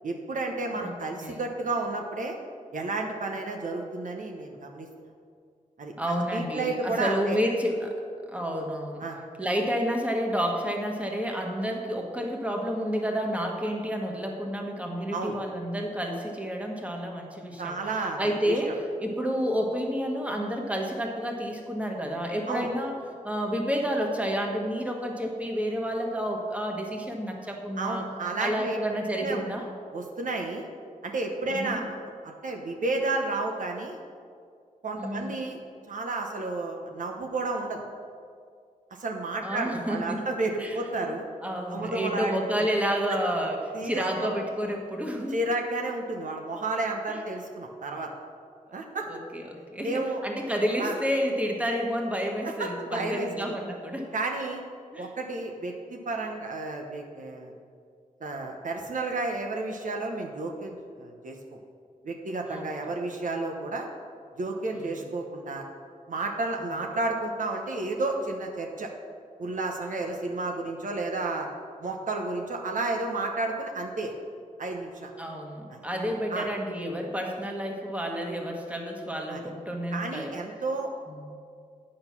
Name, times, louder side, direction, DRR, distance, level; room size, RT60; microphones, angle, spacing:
voice 1, 0.0-2.4 2.7-4.9 5.8-5.9 6.3-7.4 9.0-9.2 15.1-15.4 17.6-18.7 22.5-22.7 27.8-28.8 29.2-29.5 29.9-30.7 31.0-31.9 32.2-34.0 34.8-35.6 35.9-37.8 38.9-41.2 41.7-42.4 43.1-43.2 43.7-44.3 45.3-48.1 48.7-49.1 49.8-50.2 50.8-51.0 52.4-53.6 54.1-54.6 55.0-57.5 58.2-61.6 62.0-63.9 64.4-65.6 66.1-68.9 69.4-71.5 71.8-74.1 74.6-75.1 75.7-75.8 76.3-76.5 79.3-79.4 79.9-80.9, right 2 dB, 65° right, 2 dB, 1.0 m, -31 dB
voice 2, 0.7-1.4 6.0-7.9 8.3-9.0 9.4-17.8 18.2-22.9 23.2-28.0 28.4-29.7 31.5-31.8 35.0-35.3 39.4-40.2 40.6-40.8 41.0-41.1 41.4-43.6 43.8-45.3 47.1-47.2 49.1-49.4 49.7-54.1 54.9-55.1 62.5-62.7 75.2-80.3 81.1-81.2, equal, 10° right, 1 dB, 1.4 m, -30 dB
8.8 x 6.5 x 5.9 m, 2.2 s
cardioid pair, 70°, 14 cm